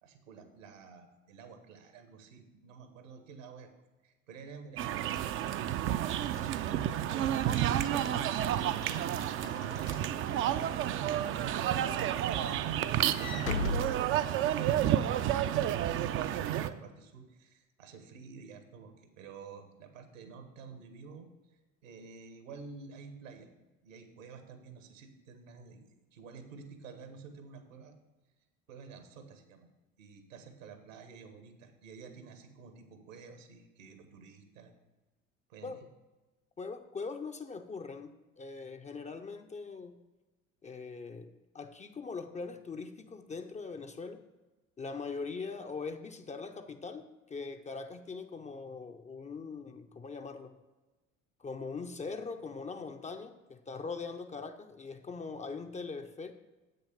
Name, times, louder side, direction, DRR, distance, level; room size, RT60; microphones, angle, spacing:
voice 1, 0.0-3.7 4.0-9.0 9.4-12.5 12.8-23.5 23.8-28.0 28.7-29.7 30.0-34.7 35.5-35.8, right 5 dB, 70° right, 7 dB, 1.3 m, -50 dB
sound 1, 4.8-16.7, right 11 dB, 35° right, 0.4 m, -30 dB
Walk footsteps / Slam, 5.0-10.7 11.2-11.5 11.8-14.8, left 2 dB, 90° left, 0.6 m, -41 dB
voice 2, 36.6-40.0 40.6-44.2 44.8-50.6 51.4-56.3, left 4 dB, 20° left, 7 dB, 0.5 m, -41 dB
8.2 x 6.6 x 5.1 m, 1.2 s
figure-of-eight pair, 60°, 40 cm